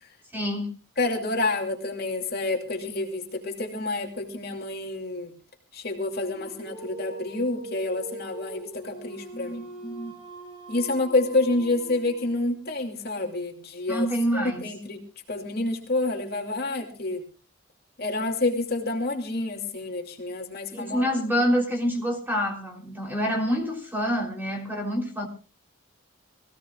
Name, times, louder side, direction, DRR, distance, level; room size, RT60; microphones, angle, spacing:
voice 1, 0.3-0.7 9.3-10.1 13.9-14.6 20.7-25.3, equal, 10° right, 1 dB, 3.6 m, -27 dB
voice 2, 1.0-5.3 5.7-9.6 10.7-14.1 14.6-15.0 15.3-17.3 18.0-21.1, left 2 dB, 50° left, 2 dB, 2.6 m, -28 dB
Dog, 6.2-12.6, right 2 dB, 25° right, 6.4 m, -42 dB
24.5 x 16.5 x 2.4 m, 0.33 s
head